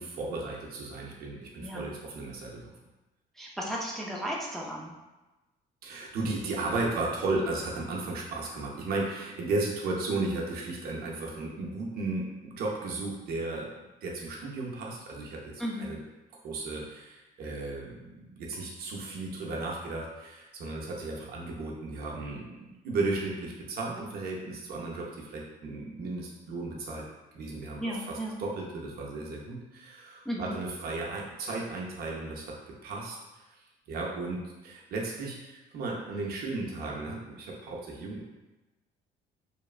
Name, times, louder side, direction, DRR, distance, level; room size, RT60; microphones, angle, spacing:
voice 1, 0.0-2.7 5.8-16.0 16.4-27.0 27.3-33.4 33.9-38.3, right 2 dB, 65° right, -2 dB, 0.6 m, -35 dB
voice 2, 3.4-4.9 15.6-15.9 27.8-28.4 30.2-30.6, equal, ahead, -4 dB, 0.4 m, -34 dB
3.0 x 2.2 x 2.4 m, 1.1 s
cardioid pair, 110°, 17 cm